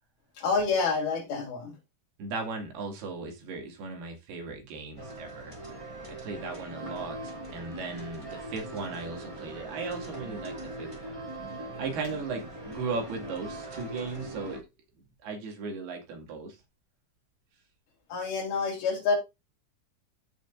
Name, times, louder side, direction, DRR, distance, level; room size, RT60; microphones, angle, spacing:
voice 1, 0.4-1.7 18.1-19.2, left 4 dB, 75° left, 4.9 m, -28 dB
voice 2, 2.2-5.5 6.1-11.1 11.8-14.6 15.2-16.6, right 4 dB, 80° right, 4.3 m, -37 dB
sound 1, 5.0-14.6, right 1 dB, 10° right, 1.9 m, -41 dB
15.0 x 6.0 x 2.5 m
omnidirectional pair, 4.4 m